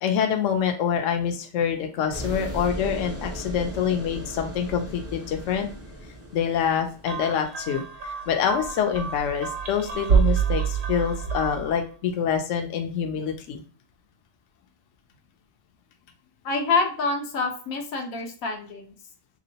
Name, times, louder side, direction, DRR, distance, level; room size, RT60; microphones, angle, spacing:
voice 1, 0.0-5.7 6.3-13.6, left 8 dB, 70° left, 4 dB, 0.9 m, -26 dB
sound 1, 2.1-7.5, right 1 dB, 20° right, 0.4 m, -37 dB
sound 2, 7.1-11.8, right 7 dB, 60° right, 0.9 m, -27 dB
voice 2, 16.4-18.9, left 4 dB, 85° left, 3 dB, 1.2 m, -26 dB
3.4 x 3.0 x 2.7 m, 0.40 s
omnidirectional pair, 1.4 m